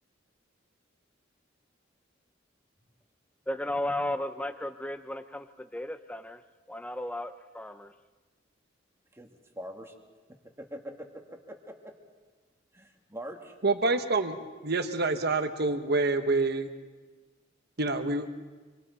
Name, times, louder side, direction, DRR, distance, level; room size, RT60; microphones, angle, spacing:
voice 1, 3.5-6.4 6.7-7.9, left 1 dB, 5° left, 10 dB, 0.5 m, -34 dB
voice 2, 9.6-9.9 10.6-11.1 11.5-11.7 12.7-13.6, equal, 15° right, 3 dB, 1.9 m, -42 dB
voice 3, 13.6-16.7 17.8-18.3, right 3 dB, 55° right, 8 dB, 1.3 m, -27 dB
25.5 x 24.0 x 4.2 m, 1.3 s
head